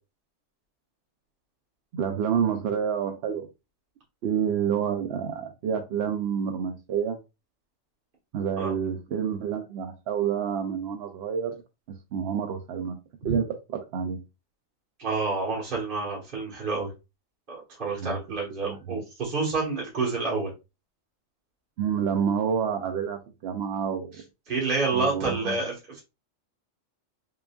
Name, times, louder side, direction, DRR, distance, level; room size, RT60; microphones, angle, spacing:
voice 1, 1.9-3.5 4.2-7.2 8.3-11.6 12.1-13.0 13.2-14.2 18.0-18.2 18.6-19.0 21.8-24.2 24.9-25.6, right 7 dB, 65° right, 0.7 m, -28 dB
voice 2, 15.0-16.9 17.5-20.5 24.5-26.0, right 4 dB, 40° right, 1.4 m, -28 dB
3.9 x 3.8 x 2.2 m
omnidirectional pair, 1.4 m